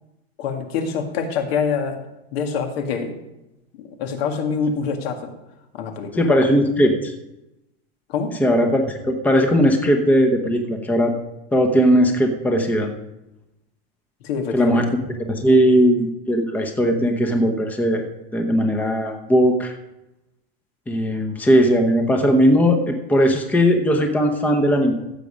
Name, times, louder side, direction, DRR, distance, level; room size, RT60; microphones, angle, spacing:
voice 1, 0.4-2.0 2.3-3.2 3.8-5.3 5.7-6.3 8.1-8.4 14.2-14.9, left 5 dB, 70° left, 5 dB, 2.1 m, -25 dB
voice 2, 6.1-7.1 8.4-11.1 11.5-12.9 14.5-14.9 15.2-18.0 18.3-19.7 20.9-24.9, equal, 5° left, 4 dB, 0.9 m, -18 dB
15.0 x 7.5 x 5.1 m, 0.92 s
supercardioid pair, 160°, 32 cm